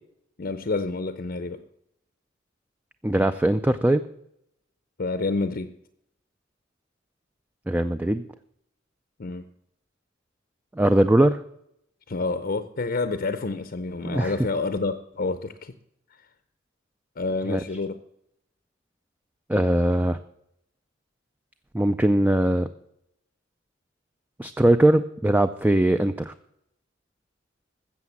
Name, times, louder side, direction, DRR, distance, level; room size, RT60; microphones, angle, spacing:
voice 1, 0.4-1.6 5.0-5.7 9.2-9.4 12.1-15.7 17.2-18.0, left 3 dB, 45° left, 11 dB, 0.6 m, -28 dB
voice 2, 3.0-4.0 7.7-8.2 10.8-11.4 14.1-14.3 17.5-17.6 19.5-20.2 21.7-22.7 24.4-26.3, right 1 dB, 10° right, 10 dB, 0.4 m, -20 dB
14.0 x 7.4 x 7.1 m, 0.77 s
head